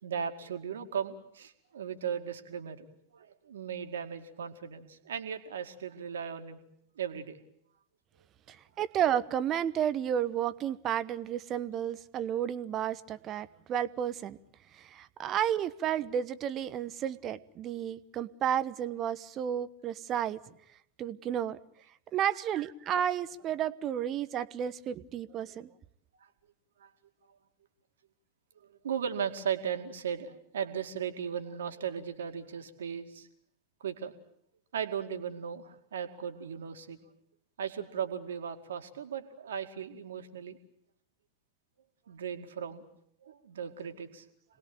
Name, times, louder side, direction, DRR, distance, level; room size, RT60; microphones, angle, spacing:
voice 1, 0.0-6.6 7.0-7.4 26.8-26.9 28.7-33.3 33.8-34.1 34.7-37.0 37.6-40.6 42.1-42.9 43.2-44.2, right 7 dB, 65° right, 7 dB, 2.3 m, -37 dB
voice 2, 8.5-14.4 14.7-20.4 21.0-21.6 22.1-25.7, right 9 dB, 30° right, 15 dB, 1.0 m, -32 dB
27.0 x 20.0 x 8.9 m, 0.71 s
figure-of-eight pair, 90°, 0 cm